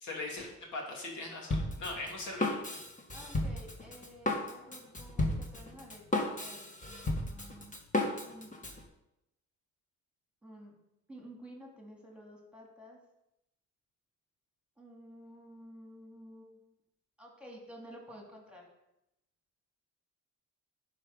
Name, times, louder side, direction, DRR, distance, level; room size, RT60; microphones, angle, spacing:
voice 1, 0.0-2.6, left 2 dB, 75° left, -1 dB, 2.9 m, -40 dB
Drum kit, 1.5-8.8, left 2 dB, 25° left, 1.6 m, -34 dB
voice 2, 3.1-7.7 8.2-8.5 10.4-10.7 11.1-13.0 14.8-16.7 17.2-18.6, equal, 5° right, -1 dB, 2.7 m, -52 dB
11.0 x 5.2 x 5.4 m, 0.87 s
cardioid pair, 90°, 30 cm